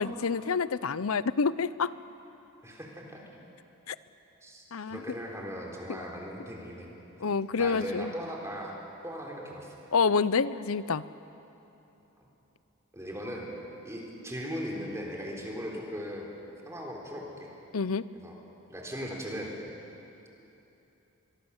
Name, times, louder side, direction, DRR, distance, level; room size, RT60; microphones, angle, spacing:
voice 1, 0.0-1.9 3.9-4.0 4.7-5.0 7.2-8.1 9.9-11.0 17.7-18.0, left 5 dB, 75° left, 16 dB, 0.6 m, -27 dB
voice 2, 2.6-3.2 4.4-6.9 7.6-8.8 9.0-9.8 12.9-13.5 13.8-16.3 16.7-17.5 18.2-18.3 18.7-19.5, equal, 15° right, -1 dB, 3.9 m, -38 dB
24.0 x 23.5 x 7.2 m, 3.0 s
head